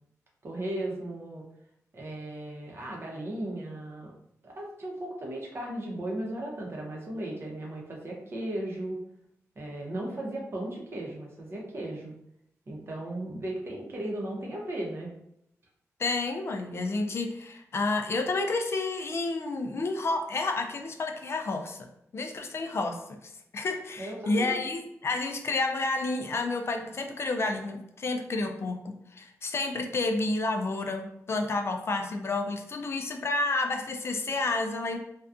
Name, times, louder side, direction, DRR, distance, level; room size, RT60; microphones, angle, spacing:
voice 1, 0.4-1.4 1.9-4.1 4.4-9.0 9.6-12.1 12.7-15.1 24.0-24.6, right 1 dB, 45° right, -2 dB, 0.7 m, -36 dB
voice 2, 16.0-21.9 22.1-35.0, left 3 dB, 50° left, 4 dB, 0.4 m, -30 dB
2.6 x 2.2 x 2.4 m, 0.76 s
cardioid pair, 90°, 6 cm